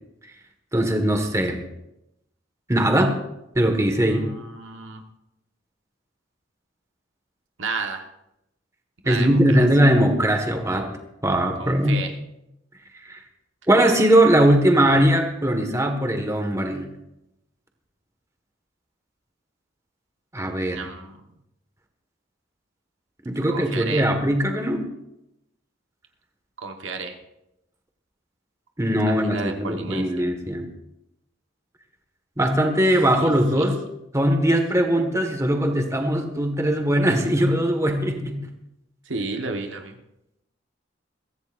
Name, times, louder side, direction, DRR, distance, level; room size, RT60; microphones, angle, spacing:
voice 1, 0.7-1.6 2.7-3.1 3.5-4.3 9.0-10.9 11.2-12.0 13.0-13.2 13.7-16.9 20.3-20.8 23.2-24.8 28.8-30.6 32.4-33.8 34.1-38.4, right 1 dB, 15° right, 4 dB, 1.6 m, -20 dB
voice 2, 4.0-5.0 7.6-8.1 9.0-9.6 11.6-12.1 20.7-21.2 23.5-24.1 26.6-27.1 29.1-30.3 33.2-33.3 33.6-33.7 39.0-40.0, right 4 dB, 90° right, 4 dB, 1.3 m, -32 dB
23.0 x 15.0 x 2.6 m, 0.87 s
head